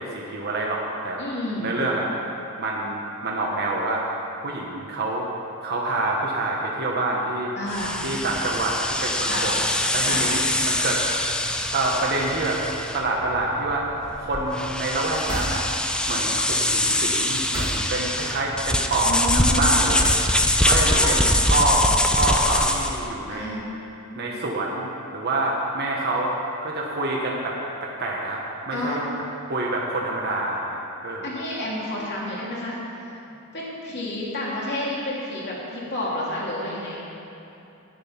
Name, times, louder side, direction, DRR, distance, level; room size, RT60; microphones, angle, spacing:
voice 1, 0.0-1.2 1.6-2.1 2.6-4.1 4.4-5.3 5.6-7.5 8.0-9.5 9.9-11.0 11.7-12.6 12.9-13.9 14.2-15.6 16.1-20.0 20.6-23.6 24.1-26.3 26.6-28.4 28.7-29.1 29.5-31.3, right 2 dB, 45° right, -3 dB, 1.1 m, -26 dB
voice 2, 1.2-1.7 7.5-8.0 9.2-9.5 10.1-10.3 19.0-20.0 20.8-21.1 23.3-23.7 28.7-29.0 31.2-32.8 33.5-37.1, left 1 dB, 50° left, -5 dB, 2.8 m, -30 dB
sound 1, 7.7-23.1, left 1 dB, 5° left, 0.4 m, -24 dB
sound 2, 15.1-16.0 17.4-18.2 19.9-20.8, equal, 15° right, 2.0 m, -31 dB
10.5 x 9.2 x 5.8 m, 2.8 s
head